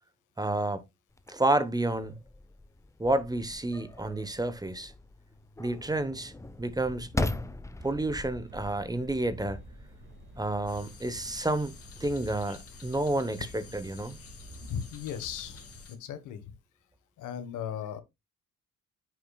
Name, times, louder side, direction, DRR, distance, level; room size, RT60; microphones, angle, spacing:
voice 1, 0.4-0.8 1.3-2.2 3.0-4.9 5.6-6.3 6.6-7.3 7.8-9.6 10.4-11.7 12.0-14.2, right 2 dB, 15° right, 1.0 m, -30 dB
sound 1, 1.1-12.1, left 2 dB, 10° left, 0.7 m, -40 dB
sound 2, 7.8-15.8, right 1 dB, 40° right, 2.1 m, -49 dB
sound 3, 10.7-16.0, left 6 dB, 50° left, 2.0 m, -51 dB
voice 2, 14.7-15.6 15.9-16.4 17.2-18.0, left 8 dB, 80° left, 1.4 m, -36 dB
9.7 x 6.0 x 2.3 m
cardioid pair, 90°, 30 cm